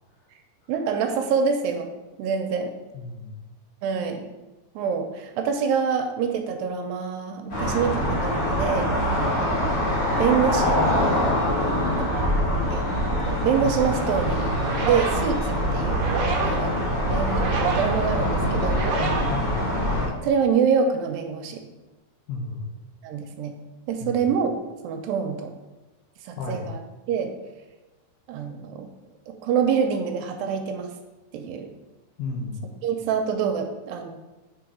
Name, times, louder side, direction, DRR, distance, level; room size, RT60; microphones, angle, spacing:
voice 1, 0.7-1.9 2.2-2.7 3.8-4.2 4.8-10.8 12.1-12.2 12.7-12.9 13.3-14.6 14.8-16.1 16.4-18.8 20.2-21.6 23.0-23.6 23.9-24.5 24.8-25.5 26.2-26.8 27.1-27.3 28.3-28.9 29.3-30.9 31.3-31.7 32.8-34.2, right 6 dB, 85° right, 5 dB, 2.3 m, -26 dB
voice 2, 2.9-3.4 11.6-11.9 19.3-19.6 22.3-22.7 24.0-24.2 26.4-26.7 32.2-32.6, left 3 dB, 75° left, -1 dB, 2.0 m, -33 dB
sound 1, 7.5-20.1, equal, 35° left, 1.1 m, -24 dB
sound 2, 14.3-20.2, right 4 dB, 70° right, 1.8 m, -30 dB
6.0 x 3.9 x 4.7 m, 1.1 s
omnidirectional pair, 4.0 m